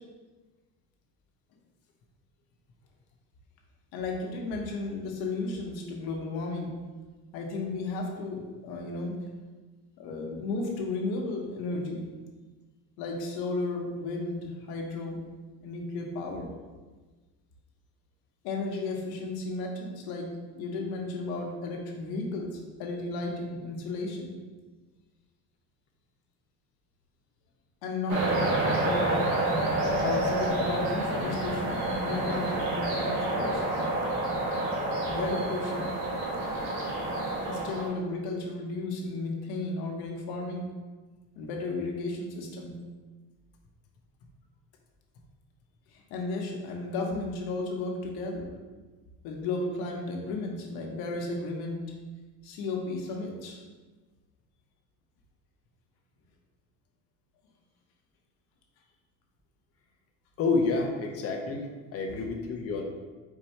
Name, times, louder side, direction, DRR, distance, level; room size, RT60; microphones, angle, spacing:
voice 1, 3.9-6.7 7.3-9.1 10.0-12.1 13.0-15.2 15.6-16.5 18.4-20.3 20.5-24.3 27.8-29.2 30.0-33.7 35.1-35.9 37.5-40.7 41.4-42.8 45.9-48.5 49.2-51.8 52.4-53.6, left 3 dB, 75° left, 0 dB, 1.1 m, -34 dB
sound 1, 28.1-37.9, right 1 dB, 75° right, 1.3 m, -28 dB
voice 2, 60.4-61.6 61.9-62.9, left 3 dB, 40° left, 2 dB, 0.7 m, -28 dB
4.5 x 2.7 x 4.4 m, 1.3 s
cardioid pair, 155°, 38 cm